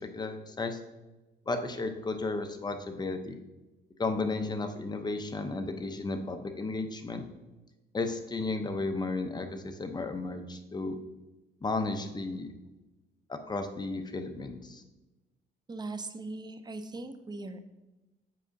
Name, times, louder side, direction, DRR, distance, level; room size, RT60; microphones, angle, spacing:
voice 1, 0.1-0.8 1.5-3.4 4.0-7.2 7.9-11.0 11.6-12.5 13.3-14.8, left 3 dB, 20° left, 6 dB, 0.7 m, -33 dB
voice 2, 15.7-17.6, right 2 dB, 20° right, 9 dB, 0.5 m, -39 dB
7.5 x 4.9 x 2.7 m, 1.1 s
cardioid pair, 90°, 20 cm